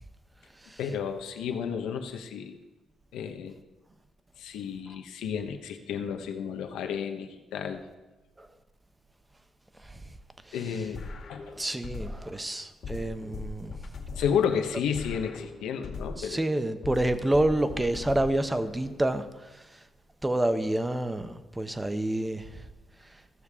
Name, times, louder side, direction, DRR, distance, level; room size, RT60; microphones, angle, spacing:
voice 1, 0.8-2.6 3.1-3.6 4.4-7.8 10.5-11.0 11.3-11.4 14.2-16.5, left 7 dB, 85° left, 1.0 m, -31 dB
voice 2, 9.7-10.2 10.4-10.8 11.4-13.8 16.2-19.9 20.2-22.7 23.0-23.2, right 1 dB, 15° right, 0.8 m, -29 dB
sound 1, 10.9-12.4 12.8-16.4 16.8-18.9, left 3 dB, 60° left, 2.0 m, -40 dB
15.5 x 6.6 x 3.6 m
cardioid pair, 90°, 0 cm